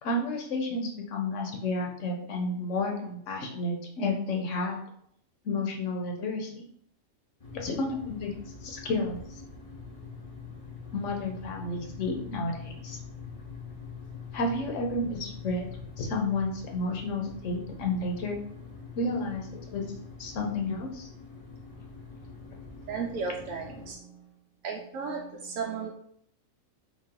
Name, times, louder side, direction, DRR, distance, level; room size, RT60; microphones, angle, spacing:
voice 1, 0.0-4.8 5.4-6.6 7.5-8.3 8.6-9.4 10.9-13.0 14.3-15.6 16.0-18.4 18.9-19.9 20.2-21.1, left 2 dB, 65° left, 1 dB, 1.1 m, -31 dB
sound 1, 7.4-23.9, left 5 dB, 35° left, 0.6 m, -44 dB
voice 2, 22.9-24.3 24.6-25.9, right 5 dB, 75° right, -1 dB, 0.9 m, -35 dB
4.0 x 2.3 x 3.6 m, 0.67 s
omnidirectional pair, 1.4 m